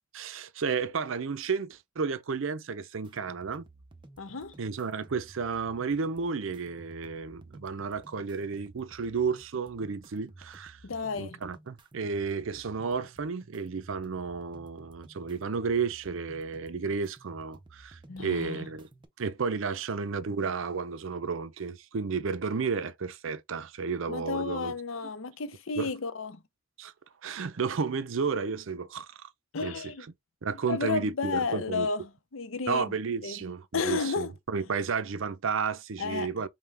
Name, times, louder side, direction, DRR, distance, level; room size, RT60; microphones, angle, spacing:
voice 1, 0.1-3.7 4.6-10.8 11.1-18.9 19.2-24.7 25.8-25.9 26.8-26.9 27.2-29.3 29.6-29.9 30.4-31.9 32.7-36.5, right 5 dB, 70° right, 0.5 m, -32 dB
sound 1, 3.0-19.0, right 2 dB, 25° right, 0.5 m, -54 dB
voice 2, 4.2-4.6 10.8-11.4 18.1-18.7 24.1-26.4 29.5-30.1 30.7-32.9 33.2-33.4 33.7-34.3 36.0-36.3, left 4 dB, 75° left, 0.7 m, -32 dB
5.6 x 2.2 x 3.3 m
head